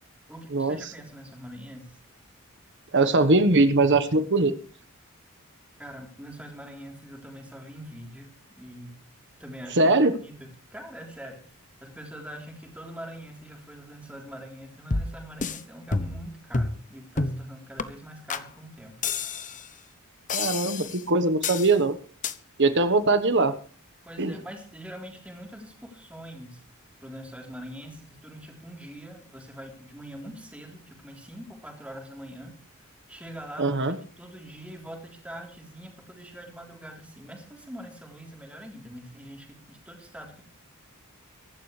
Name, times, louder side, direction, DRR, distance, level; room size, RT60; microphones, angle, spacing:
voice 1, 0.3-2.0 5.8-9.0 9.4-10.0 10.2-11.5 11.8-19.0 24.1-26.6 27.0-40.4, equal, 5° right, 1 dB, 3.7 m, -43 dB
voice 2, 2.9-4.5 9.8-10.1 20.3-22.0 22.6-23.5 24.2-24.3 33.6-34.0, right 2 dB, 55° right, 11 dB, 1.4 m, -21 dB
sound 1, 14.9-15.6 15.9-16.3 16.5-16.8 17.2-17.4 17.8-17.9 18.3-18.5 19.0-19.7 20.3-21.0 21.4-21.7 22.2-22.3, left 4 dB, 35° left, 1.0 m, -29 dB
24.0 x 12.0 x 3.4 m, 0.40 s
head